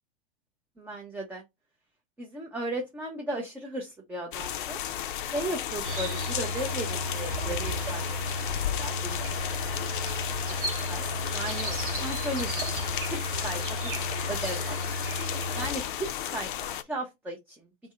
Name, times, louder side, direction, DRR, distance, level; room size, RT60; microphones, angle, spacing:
voice 1, 0.8-1.4 2.2-4.8 5.3-9.2 10.0-10.6 10.9-11.0 11.3-12.7 13.0-14.0 14.3-14.8 15.5-16.5 16.9-17.6, right 1 dB, 5° right, 0.5 m, -36 dB
sound 1, 4.3-16.8, left 11 dB, 60° left, 0.5 m, -34 dB
sound 2, 5.8-15.7, equal, 65° right, 1.3 m, -34 dB
2.6 x 2.1 x 3.5 m
figure-of-eight pair, 95°, 29 cm